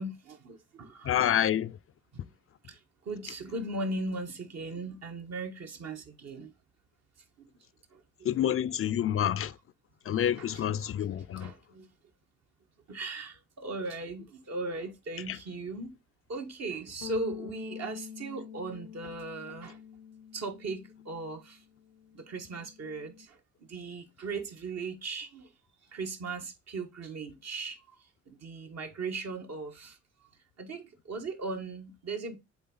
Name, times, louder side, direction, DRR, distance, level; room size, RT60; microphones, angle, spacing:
voice 1, 0.0-1.2 2.1-2.2 2.6-2.8 3.0-6.5 7.4-7.5 7.9-8.0 10.3-11.9 12.9-15.9 16.3-19.8 20.3-21.6 22.1-23.4 23.7-25.5 25.9-27.8 28.3-30.0 30.6-32.4, right 3 dB, 60° right, 1.5 m, -38 dB
voice 2, 1.1-1.7 8.2-9.5 10.1-11.5 15.3-15.4, left 10 dB, 45° left, 0.4 m, -28 dB
Bass guitar, 17.0-23.3, left 9 dB, 90° left, 0.7 m, -46 dB
7.9 x 3.6 x 4.0 m
cardioid pair, 90°, 30 cm